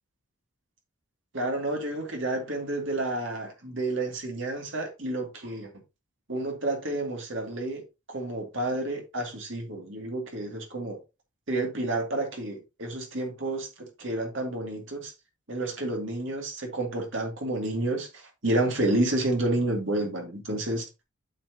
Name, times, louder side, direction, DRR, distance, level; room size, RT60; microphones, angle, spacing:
voice 1, 1.3-5.7 6.3-11.0 11.5-15.1 15.5-20.8, right 2 dB, 60° right, 2.3 m, -30 dB
8.7 x 6.0 x 2.8 m
head